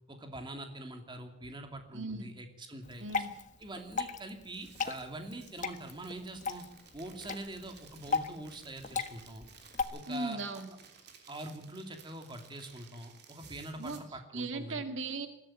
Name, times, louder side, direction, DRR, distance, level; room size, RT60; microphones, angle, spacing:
voice 1, 0.1-3.1 3.6-6.7 6.9-9.5 9.9-10.4 11.3-14.8, right 1 dB, 25° right, 5 dB, 2.7 m, -44 dB
voice 2, 1.9-2.3 3.0-3.3 10.1-10.7 13.8-14.0 14.3-15.3, right 3 dB, 75° right, 7 dB, 2.0 m, -37 dB
Water / Drip, 2.8-9.8, left 5 dB, 40° left, 1.4 m, -37 dB
sound 1, 4.4-14.0, right 6 dB, 55° right, 3.3 m, -57 dB
21.0 x 14.5 x 9.0 m, 0.81 s
head